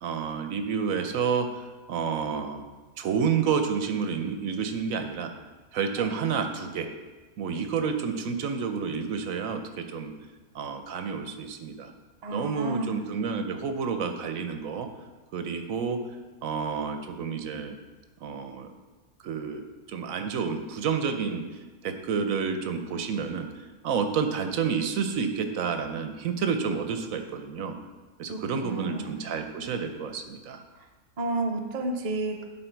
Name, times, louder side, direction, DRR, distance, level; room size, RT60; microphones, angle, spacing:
voice 1, 0.0-2.6 3.0-5.3 5.7-6.9 7.4-10.1 10.5-11.9 12.3-14.9 15.3-16.0 16.4-17.8 18.2-18.7 19.2-19.6 19.9-21.4 21.8-23.5 23.8-27.8 28.2-30.6, right 6 dB, 70° right, 7 dB, 1.1 m, -29 dB
voice 2, 12.2-13.1 28.3-29.3 31.2-32.4, right 2 dB, 40° right, 3 dB, 0.6 m, -32 dB
11.0 x 4.1 x 4.5 m, 1.3 s
omnidirectional pair, 1.5 m